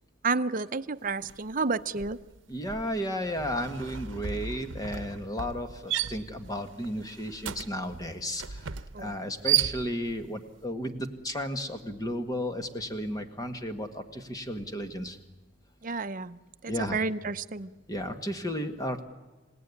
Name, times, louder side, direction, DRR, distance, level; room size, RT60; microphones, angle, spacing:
voice 1, 0.2-2.2 8.9-9.1 15.8-17.7, right 4 dB, 45° right, 10 dB, 0.7 m, -31 dB
sound 1, 1.2-1.5 1.8-10.2, right 10 dB, 80° right, 0.9 m, -34 dB
voice 2, 2.5-8.6 9.0-15.2 16.7-17.0 17.9-19.0, equal, 20° left, 7 dB, 1.8 m, -33 dB
28.0 x 17.5 x 9.8 m, 1.2 s
head